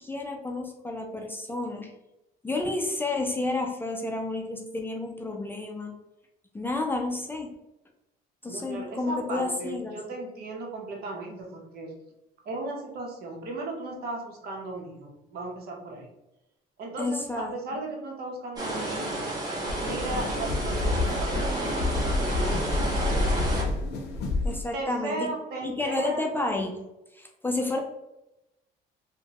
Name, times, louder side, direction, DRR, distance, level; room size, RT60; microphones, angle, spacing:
voice 1, 0.0-1.9 2.4-5.9 6.5-7.5 8.4-9.9 17.0-17.5 24.4-25.3 25.6-26.8 27.1-27.8, left 2 dB, 10° left, 2 dB, 0.4 m, -30 dB
voice 2, 8.5-11.9 12.4-16.1 16.8-19.3 19.8-22.9 24.7-26.2, right 2 dB, 65° right, 0 dB, 0.8 m, -36 dB
sound 1, 18.6-23.6, right 1 dB, 25° right, 1.3 m, -31 dB
sound 2, 19.6-24.6, left 2 dB, 75° left, 0.6 m, -28 dB
2.7 x 2.1 x 2.8 m, 0.94 s
cardioid pair, 110°, 17 cm